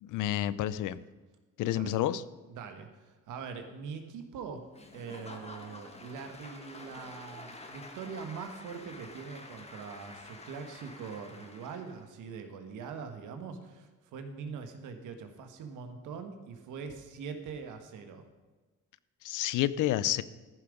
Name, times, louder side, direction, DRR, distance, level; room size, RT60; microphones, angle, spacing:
voice 1, 0.0-1.0 1.6-2.2 19.2-20.2, left 13 dB, 85° left, 17 dB, 0.6 m, -29 dB
voice 2, 2.5-18.2, right 5 dB, 85° right, 7 dB, 1.5 m, -43 dB
Applause / Crowd, 4.7-12.1, left 2 dB, 20° left, 1.5 m, -49 dB
14.0 x 7.1 x 5.2 m, 1.3 s
cardioid pair, 90°, 30 cm